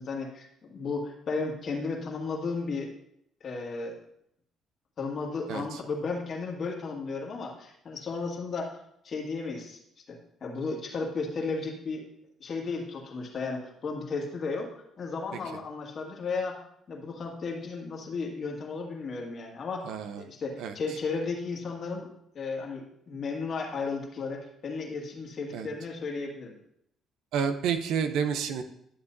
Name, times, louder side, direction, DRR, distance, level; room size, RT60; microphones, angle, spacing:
voice 1, 0.0-2.9 3.4-3.9 5.0-8.7 9.0-9.8 10.1-12.1 12.4-14.7 15.0-16.5 16.9-19.9 20.2-22.1 22.3-26.5, left 4 dB, 50° left, 0 dB, 1.8 m, -34 dB
voice 2, 5.5-5.8 19.8-20.2 20.6-20.7 25.5-25.7 27.3-28.6, right 7 dB, 80° right, 8 dB, 0.7 m, -29 dB
11.5 x 7.2 x 2.7 m, 0.75 s
cardioid pair, 90°, 0 cm